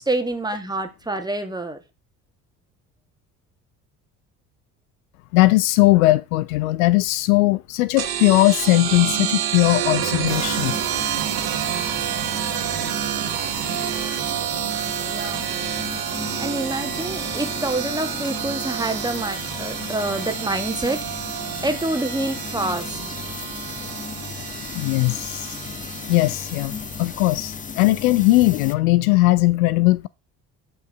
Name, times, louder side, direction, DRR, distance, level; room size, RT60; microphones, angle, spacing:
voice 1, 0.0-1.8 15.0-15.5 16.4-21.0 21.3-23.0, right 2 dB, 10° right, 2.0 m, -27 dB
voice 2, 5.3-10.8 24.7-25.6 26.1-26.7 27.0-30.1, left 19 dB, 65° left, 0.6 m, -19 dB
sound 1, 8.0-27.1, right 11 dB, 50° right, 1.6 m, -29 dB
sound 2, 10.3-28.7, left 6 dB, 15° left, 0.7 m, -35 dB
8.8 x 5.4 x 5.8 m
figure-of-eight pair, 55°, 47 cm